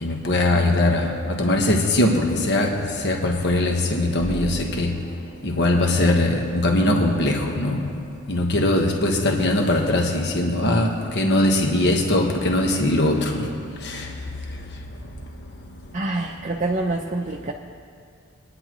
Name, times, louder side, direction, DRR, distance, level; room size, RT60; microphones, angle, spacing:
voice 1, 0.0-4.9 5.4-7.8 8.3-13.5 13.8-14.0, left 1 dB, 50° left, 1 dB, 1.3 m, -21 dB
voice 2, 15.9-17.5, right 2 dB, 35° right, 1 dB, 0.6 m, -26 dB
24.5 x 9.8 x 3.1 m, 2.3 s
head